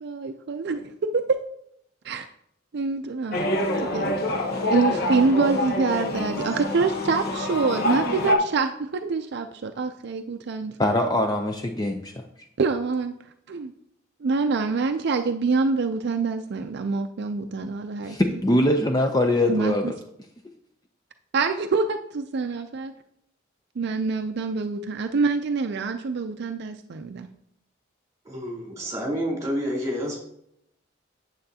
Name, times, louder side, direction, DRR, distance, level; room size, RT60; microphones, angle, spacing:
voice 1, 0.0-1.4 2.0-2.3 2.7-3.5 3.8-4.2 4.7-10.8 12.6-13.1 13.5-13.7 14.2-18.2 19.5-19.9 21.3-22.9 23.8-27.3, right 4 dB, 60° right, 7 dB, 0.4 m, -26 dB
sound 1, 3.3-8.3, left 1 dB, 55° left, 1.0 m, -26 dB
voice 2, 10.8-12.1 18.0-19.9, left 1 dB, 20° left, 4 dB, 0.5 m, -22 dB
voice 3, 28.2-30.2, equal, 15° right, -4 dB, 3.3 m, -29 dB
8.9 x 7.7 x 2.8 m, 0.74 s
head